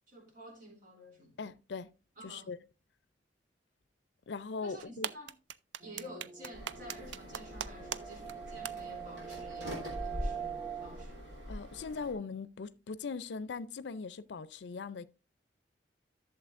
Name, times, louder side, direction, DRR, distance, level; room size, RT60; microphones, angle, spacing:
voice 1, 0.1-1.4 2.2-2.5 4.6-5.3 5.8-11.3, equal, 50° right, 3.0 m, -51 dB
voice 2, 1.4-1.9 2.2-2.6 4.3-5.1 11.5-15.0, left 4 dB, 70° left, 0.5 m, -40 dB
sound 1, 4.8-8.0 8.3-8.4 8.7-8.8, right 9 dB, 90° right, 0.4 m, -38 dB
sound 2, 5.8-11.0, right 7 dB, 20° right, 0.5 m, -44 dB
sound 3, 6.5-12.1, equal, 75° right, 3.4 m, -43 dB
12.0 x 7.0 x 2.5 m
head